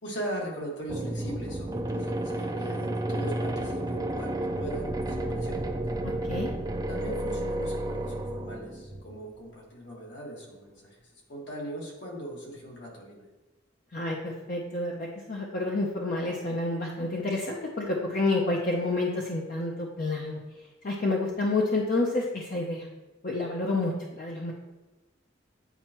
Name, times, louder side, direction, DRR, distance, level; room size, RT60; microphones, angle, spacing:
voice 1, 0.0-5.6 6.9-11.0 11.3-13.3, right 1 dB, 70° left, -2 dB, 1.7 m, -39 dB
sound 1, 0.9-9.2, right 1 dB, 20° right, 0.4 m, -31 dB
voice 2, 6.0-6.5 13.9-20.4 20.8-22.9 23.2-24.5, left 2 dB, 50° left, -2 dB, 0.7 m, -29 dB
9.1 x 4.4 x 3.0 m, 1.1 s
head